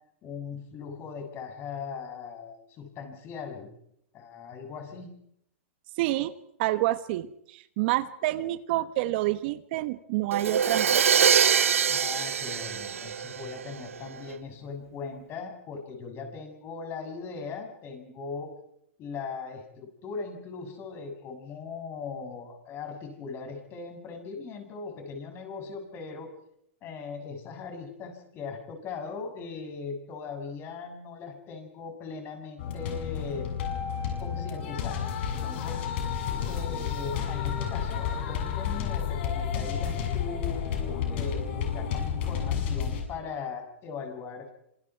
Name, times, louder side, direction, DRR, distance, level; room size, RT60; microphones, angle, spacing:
voice 1, 0.2-3.7 4.1-5.1 11.9-18.5 19.0-26.3 26.8-33.6 34.2-35.8 36.2-44.5, left 5 dB, 35° left, 4 dB, 7.0 m, -39 dB
voice 2, 6.0-6.3 6.6-11.1, right 16 dB, 50° right, 13 dB, 1.2 m, -28 dB
Crash cymbal, 10.3-14.1, right 7 dB, 90° right, 0.9 m, -24 dB
sound 1, 32.6-43.0, left 8 dB, 60° left, 7.5 m, -31 dB
27.0 x 26.5 x 4.7 m, 0.72 s
hypercardioid pair, 130°, 7 cm